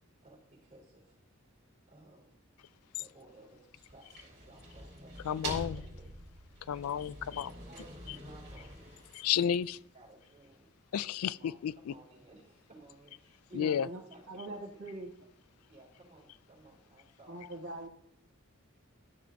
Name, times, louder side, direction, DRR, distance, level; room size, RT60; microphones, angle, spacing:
voice 1, 0.2-1.2 1.9-2.4 3.0-5.2 5.7-6.2 7.4-9.5 9.9-10.7 11.0-11.1 11.4-14.9 15.7-17.4, right 2 dB, 35° right, 4.0 m, -58 dB
sound 1, 3.8-9.8, right 2 dB, 50° right, 3.4 m, -45 dB
voice 2, 5.2-5.8 6.7-7.5 9.1-9.8 10.9-11.7 13.5-13.9, left 9 dB, 85° left, 0.3 m, -31 dB
voice 3, 13.5-14.0 14.3-15.1 17.3-17.9, right 1 dB, 85° right, 1.8 m, -42 dB
13.0 x 6.9 x 2.5 m
head